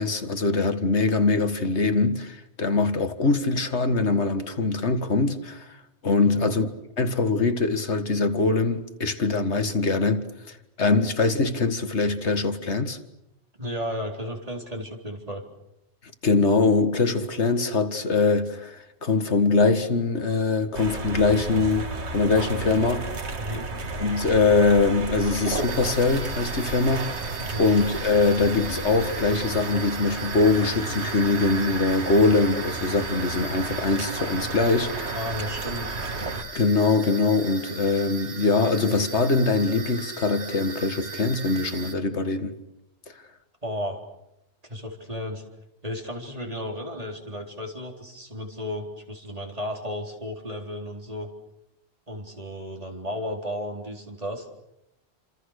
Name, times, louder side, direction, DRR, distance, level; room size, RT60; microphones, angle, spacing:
voice 1, 0.0-5.8 6.0-6.7 7.0-13.0 16.2-23.1 24.0-27.2 27.6-35.2 36.5-42.5, left 3 dB, 85° left, 2.1 m, -23 dB
voice 2, 6.2-6.5 13.6-15.4 23.4-23.7 27.4-27.7 35.1-36.0 43.6-44.0 44.6-45.4 45.8-51.3 52.1-54.5, equal, 35° right, 4.2 m, -34 dB
sound 1, 20.7-36.4, right 3 dB, 80° right, 2.0 m, -32 dB
sound 2, 25.5-41.9, right 4 dB, 60° right, 2.2 m, -39 dB
29.5 x 26.5 x 6.6 m
omnidirectional pair, 1.1 m